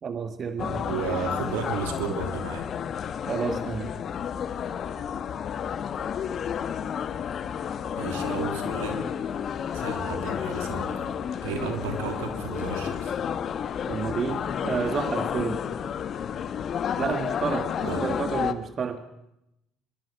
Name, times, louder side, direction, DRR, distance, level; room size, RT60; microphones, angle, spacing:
voice 1, 0.0-0.9 3.3-3.9 11.6-11.8 13.9-15.6 17.0-19.0, right 6 dB, 45° right, 9 dB, 1.6 m, -30 dB
sound 1, 0.6-18.5, left 8 dB, 50° left, 1.5 m, -31 dB
voice 2, 0.8-2.7 7.9-9.1 9.7-11.1 11.4-13.1 17.8-18.1, right 6 dB, 80° right, 5 dB, 3.3 m, -33 dB
24.0 x 22.5 x 6.0 m, 0.84 s
hypercardioid pair, 60°, 0 cm